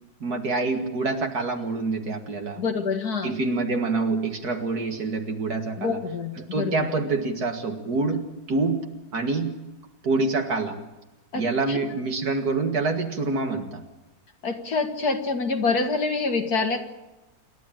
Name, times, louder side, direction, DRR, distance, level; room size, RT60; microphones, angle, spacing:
voice 1, 0.2-2.6 3.2-6.0 6.4-8.9 9.1-9.6 10.0-10.8 11.3-13.8, right 3 dB, 55° right, 5 dB, 2.2 m, -26 dB
voice 2, 2.6-3.4 5.8-6.9 11.3-11.8 14.4-16.8, left 4 dB, 55° left, 5 dB, 2.1 m, -26 dB
28.0 x 11.5 x 8.9 m, 1.0 s
omnidirectional pair, 2.0 m